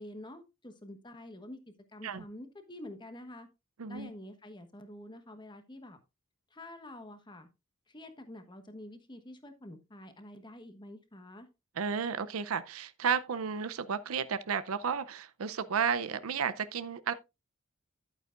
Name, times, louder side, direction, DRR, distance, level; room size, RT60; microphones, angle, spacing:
voice 1, 0.0-1.6 1.9-3.5 3.9-6.0 6.5-7.5 7.9-11.5, left 1 dB, 20° left, 1.2 m, -47 dB
voice 2, 3.8-4.1 11.8-17.1, right 6 dB, 85° right, 0.6 m, -32 dB
11.0 x 8.9 x 2.5 m
head